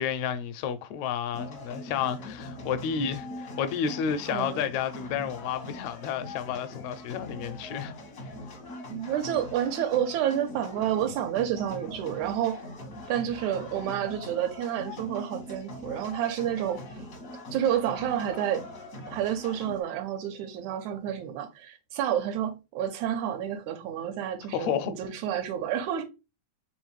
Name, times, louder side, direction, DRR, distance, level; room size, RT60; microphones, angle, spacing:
voice 1, 0.0-7.9 24.5-24.9, left 8 dB, 80° left, 1.7 m, -31 dB
sound 1, 1.3-19.8, left 1 dB, 60° left, 0.8 m, -42 dB
voice 2, 4.3-4.6 8.9-12.6 13.1-17.0 17.5-18.7 19.1-26.0, right 10 dB, 85° right, 2.1 m, -29 dB
4.7 x 3.6 x 3.1 m
omnidirectional pair, 3.3 m